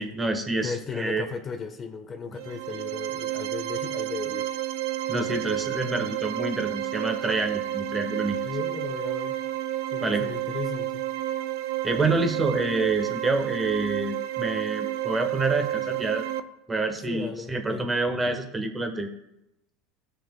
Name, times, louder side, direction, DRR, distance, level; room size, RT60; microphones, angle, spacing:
voice 1, 0.0-1.2 5.1-8.5 10.0-10.2 11.8-16.2 16.7-19.1, right 3 dB, 15° right, 6 dB, 1.1 m, -27 dB
voice 2, 0.6-4.5 8.4-9.4 9.9-11.0 17.1-17.9, left 5 dB, 30° left, 8 dB, 1.0 m, -36 dB
sound 1, 2.3-16.4, right 13 dB, 70° right, 0.5 m, -30 dB
15.5 x 6.5 x 2.3 m, 0.86 s
hypercardioid pair, 100°, 0 cm